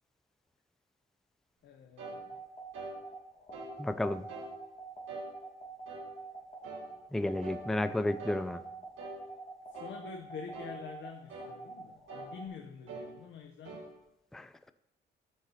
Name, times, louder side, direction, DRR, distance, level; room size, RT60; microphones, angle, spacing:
voice 1, 1.6-2.4 9.8-13.8, left 6 dB, 70° left, 4 dB, 0.8 m, -46 dB
sound 1, 2.0-12.4, right 4 dB, 35° left, 2.2 m, -46 dB
sound 2, 2.0-2.2 2.7-3.0 3.5-3.8 4.3-4.5 5.1-5.3 5.9-6.1 6.6-6.9 7.4-7.6 8.2-8.4 9.0-9.2 9.7-10.0 10.5-10.8 11.3-11.5 12.1-12.3 12.9-13.1 13.6-13.9, right 2 dB, 85° right, 1.8 m, -44 dB
voice 2, 3.8-4.3 7.1-8.6 14.3-14.5, left 1 dB, ahead, 12 dB, 0.4 m, -32 dB
13.0 x 6.7 x 2.8 m, 0.86 s
cardioid pair, 90°, 20 cm